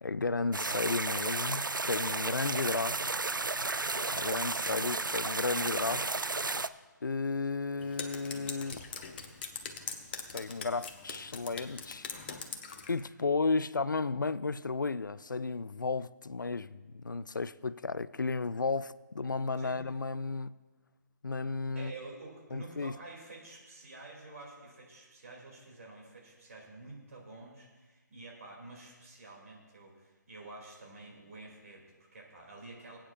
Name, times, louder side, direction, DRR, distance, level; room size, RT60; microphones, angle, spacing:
voice 1, 0.0-3.3 4.1-6.3 7.0-8.8 10.3-12.1 12.9-20.5 21.2-21.9 22.5-22.9, left 4 dB, 75° left, 0.4 m, -33 dB
sound 1, 0.5-6.7, right 3 dB, 90° right, 0.4 m, -33 dB
voice 2, 4.5-4.9 19.6-19.8 21.7-33.0, right 2 dB, 50° right, 2.6 m, -49 dB
Drip, 7.8-13.0, left 5 dB, 30° left, 0.8 m, -42 dB
20.5 x 8.8 x 2.5 m
figure-of-eight pair, 140°, 10 cm